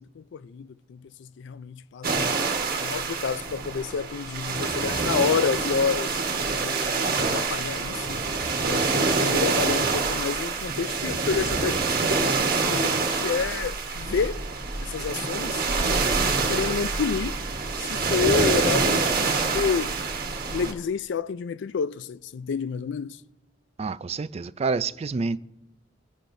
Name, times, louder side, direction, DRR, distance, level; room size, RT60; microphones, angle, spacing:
voice 1, 0.0-2.4 2.8-8.2 8.7-12.4 12.6-14.4 14.8-17.4 17.8-19.9 20.5-23.2, left 6 dB, 70° left, 0.4 m, -29 dB
sound 1, 2.0-20.7, right 4 dB, 50° right, 1.4 m, -26 dB
voice 2, 23.8-25.4, right 4 dB, 35° right, 0.4 m, -28 dB
24.5 x 10.0 x 2.7 m
head